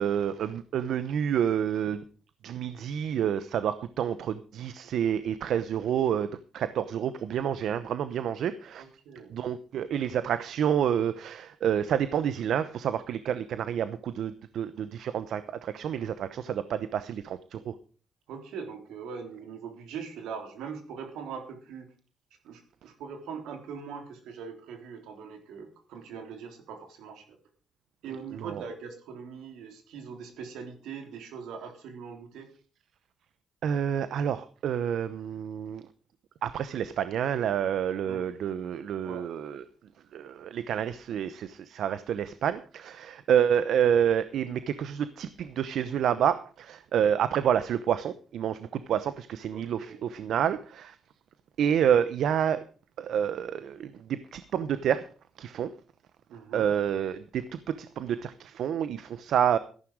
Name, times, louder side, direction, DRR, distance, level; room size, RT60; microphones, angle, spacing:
voice 1, 0.0-2.0 2.4-8.8 9.3-17.7 28.3-28.6 33.6-35.8 36.4-39.6 40.1-51.0 51.6-52.6 53.0-55.0 55.4-55.7 56.5-59.6, right 9 dB, 70° right, 14 dB, 0.8 m, -28 dB
voice 2, 8.8-9.3 18.3-21.9 22.4-27.2 28.0-32.5 38.1-38.2 39.0-39.2 49.5-50.0 56.3-56.7, right 6 dB, 85° right, 5 dB, 3.6 m, -41 dB
14.0 x 11.5 x 4.8 m, 0.39 s
cardioid pair, 90°, 0 cm